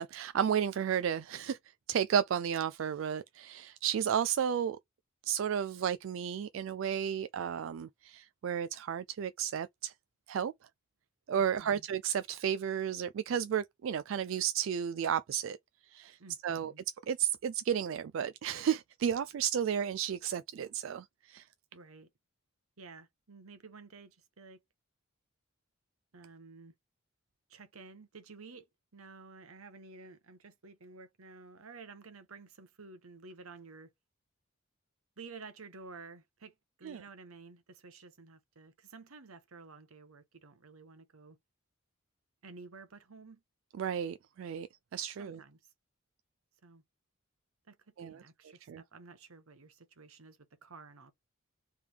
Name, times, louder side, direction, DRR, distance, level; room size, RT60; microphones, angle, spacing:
voice 1, 0.0-1.6 1.9-4.8 5.2-9.9 10.3-10.5 11.3-15.6 15.9-16.7 17.1-21.5 36.8-37.0 43.7-45.4 48.0-48.2 48.7-48.8, right 8 dB, 65° right, 0.3 m, -33 dB
voice 2, 11.3-11.8 16.2-16.8 21.7-22.1 22.8-24.6 26.1-26.7 27.5-28.7 28.9-33.9 35.2-41.4 42.4-43.4 45.2-45.6 46.6-46.8 47.7-51.1, right 4 dB, 85° right, 1.1 m, -52 dB
3.5 x 3.4 x 4.4 m
head